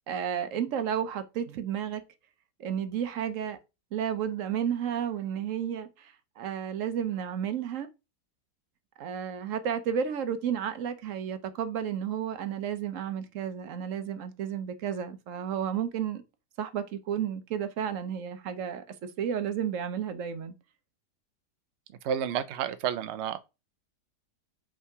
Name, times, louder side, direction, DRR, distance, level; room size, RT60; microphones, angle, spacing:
voice 1, 0.0-2.0 2.6-3.6 3.9-7.9 9.0-16.2 16.6-20.5, right 8 dB, 60° right, 1.0 m, -32 dB
voice 2, 22.0-23.4, right 9 dB, 85° right, 0.6 m, -30 dB
5.6 x 3.8 x 4.6 m
omnidirectional pair, 1.8 m